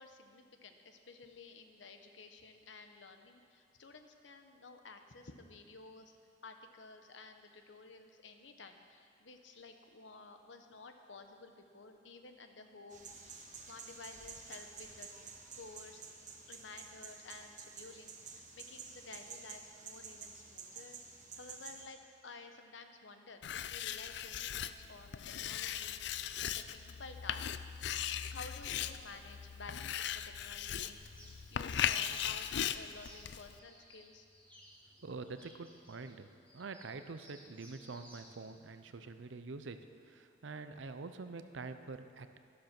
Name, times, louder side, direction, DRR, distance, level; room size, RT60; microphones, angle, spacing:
voice 1, 0.0-6.2 6.4-15.1 15.5-16.0 16.5-21.0 21.4-26.0 26.4-27.5 28.3-31.0 31.5-34.3, left 3 dB, 75° left, 6 dB, 1.0 m, -53 dB
sound 1, 12.9-21.8, right 5 dB, 40° right, 1.2 m, -50 dB
Writing, 23.4-33.6, left 9 dB, 60° left, 0.4 m, -38 dB
sound 2, 30.8-38.3, equal, 5° left, 2.0 m, -59 dB
voice 2, 35.0-42.4, right 3 dB, 75° right, 9 dB, 0.6 m, -46 dB
12.0 x 11.5 x 5.9 m, 2.4 s
head